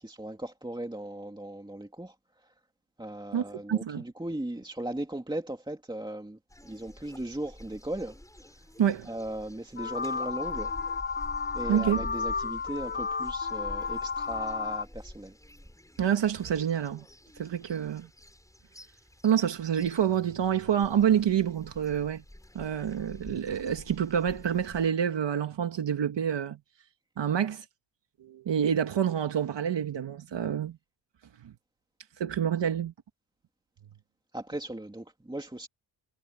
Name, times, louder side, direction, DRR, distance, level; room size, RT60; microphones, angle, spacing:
voice 1, 0.0-2.5 3.0-8.2 8.5-8.6 9.1-10.7 11.5-15.4 34.3-35.7, right 1 dB, 10° right, 2.5 m, -37 dB
voice 2, 3.7-4.0 8.8-9.1 11.7-12.1 16.0-17.0 17.4-18.1 19.2-22.2 22.5-26.6 27.2-27.6 28.2-30.8 31.4-31.5 32.2-32.9, right 9 dB, 65° right, 1.7 m, -27 dB
sound 1, 6.5-24.9, left 1 dB, 5° left, 6.8 m, -48 dB
sound 2, 9.8-14.9, left 5 dB, 25° left, 0.4 m, -32 dB
cardioid pair, 85°, 46 cm